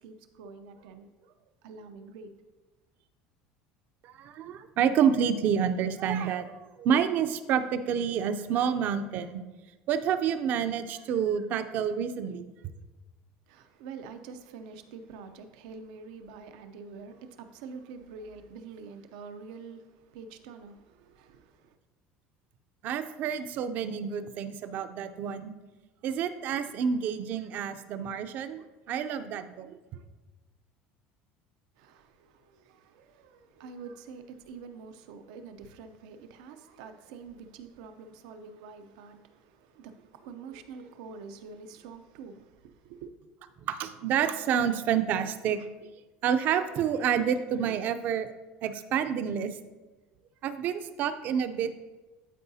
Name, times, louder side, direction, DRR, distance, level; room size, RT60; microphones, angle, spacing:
voice 1, 0.0-1.3 1.6-2.3 13.5-21.8 31.8-43.1, right 5 dB, 90° right, 0.6 m, -46 dB
voice 2, 4.0-9.3 9.9-12.5 22.8-25.5 26.0-28.6 28.9-30.0 43.7-45.7 46.2-48.3 48.6-49.6 50.4-51.7, right 8 dB, 50° right, 0.5 m, -28 dB
11.5 x 4.7 x 2.8 m
cardioid pair, 140°, 4 cm